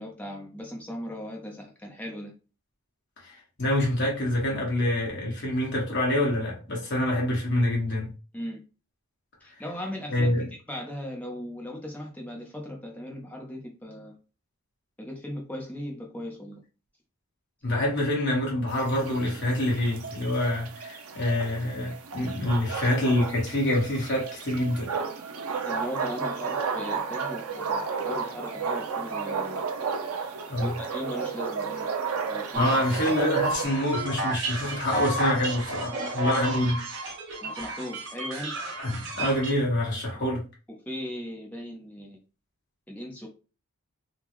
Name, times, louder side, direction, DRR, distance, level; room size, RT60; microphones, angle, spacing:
voice 1, 0.0-2.3 8.3-8.6 9.4-14.2 15.0-16.6 25.7-29.7 30.6-31.9 32.3-32.7 37.4-38.5 40.9-42.2 42.9-43.3, equal, 5° left, 0.7 m, -38 dB
voice 2, 3.2-8.1 10.1-10.5 17.6-24.9 30.5-30.8 32.5-36.8 38.8-40.4, left 1 dB, 50° left, 1.5 m, -26 dB
sound 1, 18.7-33.6, right 5 dB, 85° right, 0.6 m, -33 dB
sound 2, 32.5-39.5, right 2 dB, 55° right, 0.9 m, -31 dB
3.6 x 2.3 x 3.0 m
head